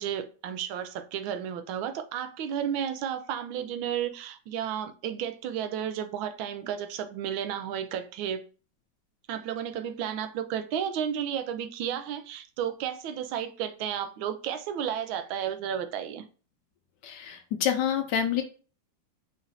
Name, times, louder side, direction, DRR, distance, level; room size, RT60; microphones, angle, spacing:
voice 1, 0.0-8.4 9.3-16.2, right 9 dB, 90° right, 1.4 m, -32 dB
voice 2, 17.0-18.4, left 8 dB, 70° left, 1.2 m, -27 dB
4.9 x 2.6 x 3.9 m
omnidirectional pair, 2.1 m